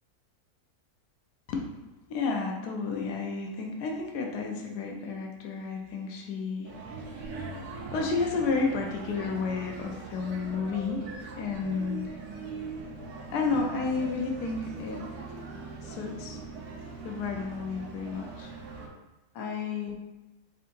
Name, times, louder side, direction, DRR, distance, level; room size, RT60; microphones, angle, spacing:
voice 1, 2.1-6.7 7.9-12.2 13.3-15.0 15.8-16.4 17.0-18.5 19.3-19.9, left 4 dB, 75° left, 1 dB, 1.2 m, -31 dB
sound 1, 6.6-18.9, right 4 dB, 75° right, 1.2 m, -41 dB
3.9 x 3.8 x 2.6 m, 1.1 s
omnidirectional pair, 1.7 m